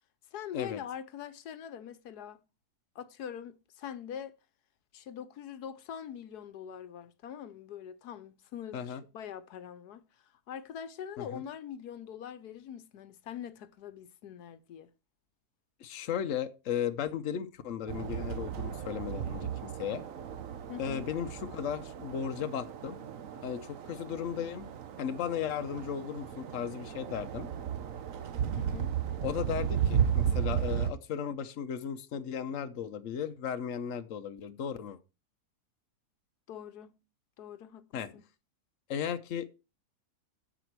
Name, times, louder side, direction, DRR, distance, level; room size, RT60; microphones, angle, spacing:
voice 1, 0.3-2.4 2.9-4.3 4.9-10.1 10.5-14.9 20.7-21.1 28.6-28.9 36.5-37.0 37.4-38.2, left 9 dB, 80° left, 1.3 m, -43 dB
voice 2, 15.8-20.0 20.8-23.0 23.4-24.7 25.0-27.5 29.2-35.0 37.9-38.1 38.9-39.5, left 8 dB, 55° left, 1.1 m, -35 dB
sound 1, 17.9-30.9, right 9 dB, 60° right, 1.2 m, -34 dB
14.5 x 5.1 x 4.6 m
omnidirectional pair, 1.7 m